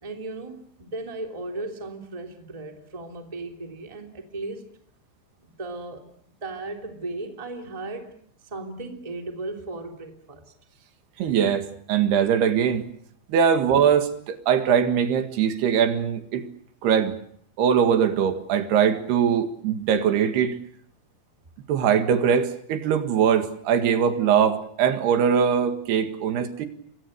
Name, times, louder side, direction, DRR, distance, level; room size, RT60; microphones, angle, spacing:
voice 1, 0.0-4.6 5.4-6.1 6.4-8.1 8.5-10.5, right 2 dB, 10° right, 3 dB, 2.3 m, -36 dB
voice 2, 11.2-12.8 13.3-16.4 16.8-17.2 17.6-20.6 21.7-26.7, right 8 dB, 65° right, 7 dB, 3.6 m, -21 dB
29.5 x 23.5 x 6.7 m, 0.65 s
omnidirectional pair, 5.4 m